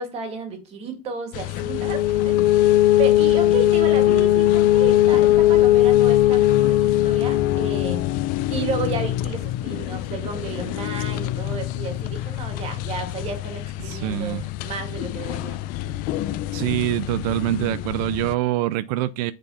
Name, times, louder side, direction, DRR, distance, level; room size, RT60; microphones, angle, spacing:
voice 1, 0.0-8.3 8.5-15.7, right 4 dB, 30° right, 1.9 m, -33 dB
sound 1, 1.3-18.3, left 14 dB, 45° left, 0.5 m, -21 dB
voice 2, 13.8-14.4 16.5-19.3, right 15 dB, 80° right, 0.5 m, -25 dB
7.7 x 4.5 x 5.5 m
cardioid pair, 175°, 20 cm